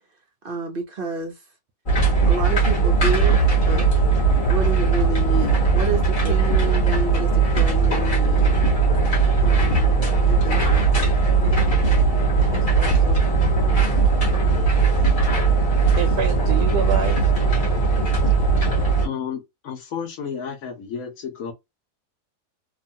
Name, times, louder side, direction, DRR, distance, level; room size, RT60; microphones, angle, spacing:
voice 1, 0.4-1.4 2.2-3.9 4.5-8.6 9.4-11.8 13.0-14.1, right 3 dB, 60° right, 0.6 m, -30 dB
sound 1, 1.9-19.1, right 4 dB, 35° left, 1.1 m, -19 dB
voice 2, 12.5-13.3 13.9-14.0 16.0-17.3, right 7 dB, 80° right, 1.1 m, -28 dB
voice 3, 19.0-21.5, left 7 dB, 65° left, 1.2 m, -32 dB
3.0 x 2.3 x 2.6 m
omnidirectional pair, 1.7 m